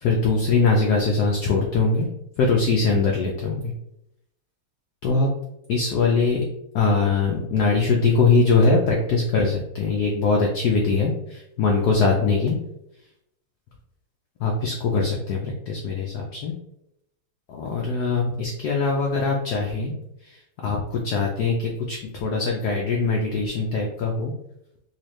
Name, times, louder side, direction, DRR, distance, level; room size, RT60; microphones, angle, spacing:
voice 1, 0.0-2.1 2.4-3.7 5.0-5.3 5.7-6.4 6.7-12.6 14.4-16.5 17.5-19.9 20.2-20.4 20.6-24.3, left 4 dB, 85° left, 0 dB, 0.8 m, -22 dB
4.4 x 2.4 x 3.1 m, 0.81 s
omnidirectional pair, 2.4 m